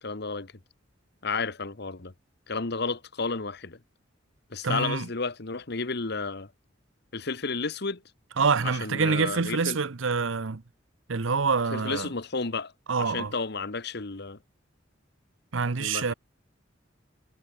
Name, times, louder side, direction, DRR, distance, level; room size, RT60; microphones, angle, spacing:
voice 1, 0.0-0.5 1.2-2.1 2.5-3.8 4.5-6.5 7.1-8.0 8.6-9.8 11.7-12.7 13.0-14.4 15.8-16.1, left 4 dB, 60° left, 1.4 m, -32 dB
voice 2, 4.6-5.1 8.4-10.6 11.1-12.1 12.9-13.3 15.5-16.1, right 5 dB, 85° right, 0.8 m, -26 dB
head